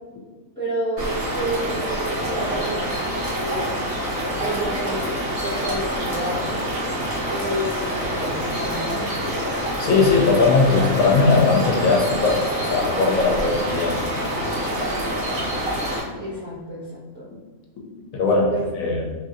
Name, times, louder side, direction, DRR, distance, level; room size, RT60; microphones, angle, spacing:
voice 1, 0.5-3.1 3.4-3.7 4.4-5.1 5.4-6.6 7.3-9.1 16.2-17.3 18.5-18.6, right 1 dB, 10° right, -11 dB, 0.9 m, -30 dB
sound 1, 1.0-16.0, equal, 55° right, 1.3 m, -26 dB
voice 2, 9.8-14.0 18.1-18.5 18.8-19.0, left 4 dB, 80° left, -1 dB, 1.0 m, -19 dB
3.0 x 2.5 x 2.5 m, 1.4 s
omnidirectional pair, 1.5 m